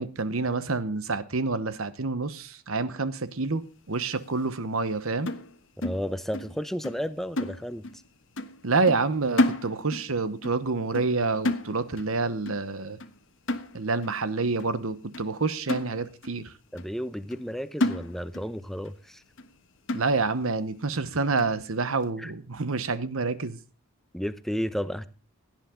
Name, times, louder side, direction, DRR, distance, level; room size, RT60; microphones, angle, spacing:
voice 1, 0.0-5.3 8.6-13.0 13.7-16.5 19.9-23.6, right 3 dB, 65° right, 1.0 m, -28 dB
sound 1, 5.3-6.6 6.8-7.1 7.4-8.1 8.4-8.6 8.9-10.1 10.4-10.6 10.9-12.1 12.5-12.7 13.0-13.2 13.5-14.1 14.6-14.7 15.1-15.3 15.7-16.4 16.8-16.9 17.3-17.5 17.8-18.5 18.8-18.9 19.4-19.5 19.9-20.4 20.9-21.0 21.4-21.6, left 1 dB, 60° left, 1.3 m, -31 dB
voice 2, 5.8-7.9 16.7-19.2 22.2-22.3 24.1-25.1, equal, ahead, 0.7 m, -32 dB
17.0 x 10.5 x 3.8 m
head